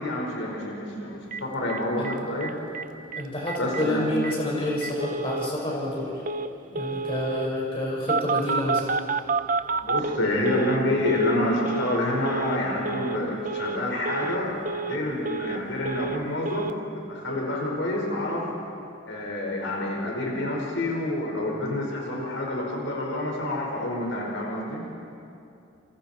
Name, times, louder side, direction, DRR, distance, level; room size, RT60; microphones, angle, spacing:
voice 1, 0.0-2.5 3.6-4.1 9.8-18.5 19.1-24.8, left 1 dB, 85° left, -1 dB, 5.1 m, -28 dB
Telephone, 1.3-1.4 1.7-2.1 2.4-2.8 3.1-3.2 3.5-3.8 4.2-4.3 4.8-5.5 6.2-6.5 6.7-7.5 8.1-10.8 11.0-11.4 11.6-12.0 12.2-12.6 12.8-13.2 13.4-13.8 14.0-14.4 14.6-15.6 15.8-16.2 16.4-16.7, right 4 dB, 45° right, 0.6 m, -29 dB
voice 2, 3.2-6.1 6.7-8.9, left 1 dB, 30° left, -3 dB, 5.6 m, -28 dB
29.0 x 28.0 x 4.5 m, 2.6 s
head